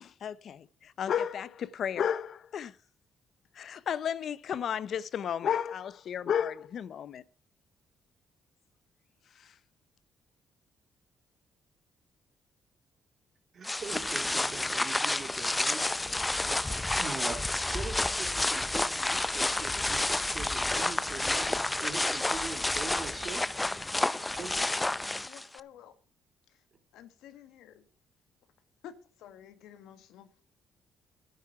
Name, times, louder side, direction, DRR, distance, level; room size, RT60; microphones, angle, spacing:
voice 1, 0.0-2.8 3.5-7.2 9.4-9.5, left 8 dB, 60° left, 0.6 m, -33 dB
voice 2, 13.5-15.9 16.6-23.4 24.3-24.7, right 5 dB, 50° right, 2.6 m, -43 dB
sound 1, 13.6-25.6, left 2 dB, 15° left, 0.6 m, -30 dB
voice 3, 25.2-25.9 26.5-26.6 26.9-27.9 28.8-30.4, left 9 dB, 90° left, 1.6 m, -51 dB
11.5 x 9.7 x 5.8 m
cardioid pair, 90°, 0 cm